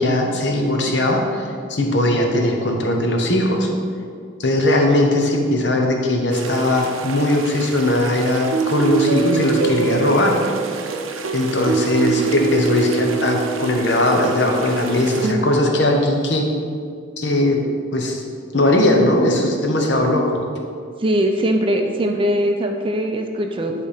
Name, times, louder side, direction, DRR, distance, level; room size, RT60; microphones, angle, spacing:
voice 1, 0.0-3.7 4.4-10.4 11.3-16.5 17.2-17.6 17.9-18.2 18.5-20.3, left 1 dB, 60° left, 1 dB, 0.9 m, -19 dB
sound 1, 6.3-15.3, right 6 dB, 90° right, 0.6 m, -25 dB
voice 2, 21.0-23.7, equal, 25° right, 3 dB, 0.5 m, -21 dB
10.0 x 3.4 x 5.0 m, 2.2 s
head